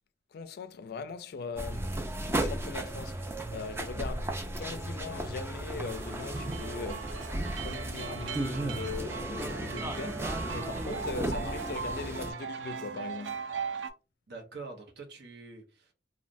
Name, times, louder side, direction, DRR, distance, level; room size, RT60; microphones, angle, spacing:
voice 1, 0.3-2.0 2.3-7.3 7.6-13.4, left 5 dB, 60° left, 0.4 m, -40 dB
sound 1, 1.6-12.3, right 1 dB, 15° right, 0.4 m, -35 dB
sound 2, 5.9-13.9, right 6 dB, 80° right, 0.4 m, -39 dB
voice 2, 14.3-15.9, right 3 dB, 65° right, 0.9 m, -45 dB
3.2 x 2.2 x 2.5 m
head